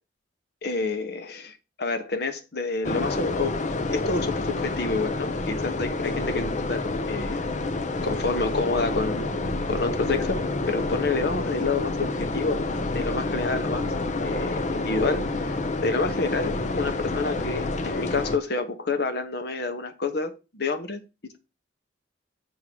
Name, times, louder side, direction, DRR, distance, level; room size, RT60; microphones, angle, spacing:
voice 1, 0.6-3.6 3.9-7.4 8.0-9.4 9.7-12.7 12.9-13.9 14.2-21.0, left 3 dB, 60° left, 1.1 m, -28 dB
sound 1, 2.8-18.4, left 2 dB, 40° left, 0.7 m, -28 dB
7.4 x 3.8 x 6.1 m
head